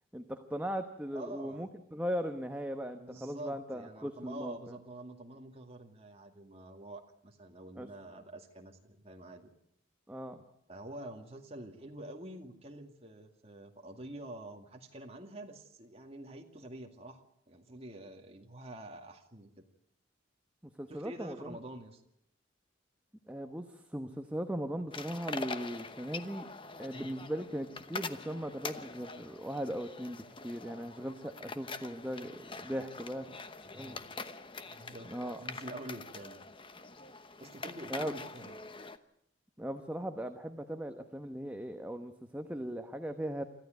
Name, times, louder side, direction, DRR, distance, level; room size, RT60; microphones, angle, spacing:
voice 1, 0.1-4.7 7.8-7.9 10.1-10.4 20.6-21.6 23.3-26.5 26.8-33.3 33.7-34.0 35.1-35.4 37.9-38.1 39.6-43.4, equal, 10° right, 6 dB, 1.0 m, -38 dB
voice 2, 1.1-1.7 3.0-9.5 10.7-19.6 20.9-22.0 26.9-27.1 33.7-34.1 34.6-35.1 35.4-36.4 37.4-38.6, right 1 dB, 30° right, 3 dB, 2.2 m, -47 dB
sound 1, 24.9-39.0, left 4 dB, 25° left, 1.0 m, -44 dB
26.0 x 14.5 x 9.3 m, 0.76 s
head